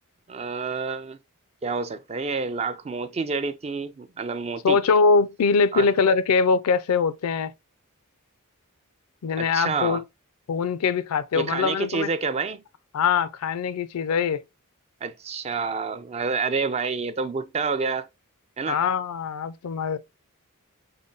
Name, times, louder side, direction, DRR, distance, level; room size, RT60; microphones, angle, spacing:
voice 1, 0.3-1.2 1.6-4.8 5.7-5.9 9.4-10.0 11.3-12.6 15.0-18.1 18.6-18.8, right 4 dB, 30° right, 0.4 m, -28 dB
voice 2, 4.6-7.5 9.2-10.0 10.5-12.1 12.9-14.4 18.7-20.0, left 5 dB, 75° left, 0.4 m, -22 dB
5.1 x 2.2 x 3.7 m
head